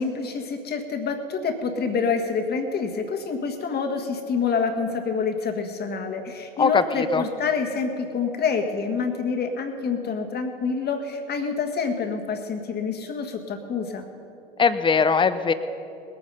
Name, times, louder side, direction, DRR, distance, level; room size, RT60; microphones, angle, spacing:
voice 1, 0.0-14.1, left 5 dB, 35° left, 5 dB, 1.6 m, -27 dB
voice 2, 6.6-7.2 14.6-15.5, left 5 dB, 15° left, 12 dB, 0.6 m, -20 dB
20.5 x 9.0 x 5.3 m, 2.9 s
hypercardioid pair, 80°, 30 cm